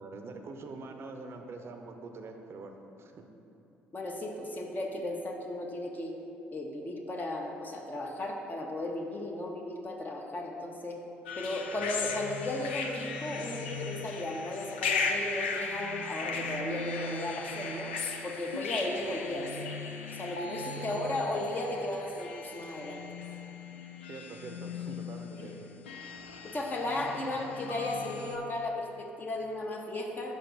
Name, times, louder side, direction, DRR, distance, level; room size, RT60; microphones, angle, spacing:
voice 1, 0.0-3.2 11.8-12.0 20.8-21.2 24.1-25.5 27.3-27.5, right 3 dB, 45° right, 5 dB, 0.6 m, -45 dB
voice 2, 3.9-6.1 6.5-11.0 11.3-17.9 18.2-19.6 20.2-23.2 25.4-25.5 26.4-30.4, left 1 dB, 30° left, 1 dB, 0.8 m, -35 dB
sound 1, 11.3-28.4, left 4 dB, 85° left, 0.4 m, -37 dB
5.2 x 4.4 x 5.1 m, 2.9 s
hypercardioid pair, 50°, 6 cm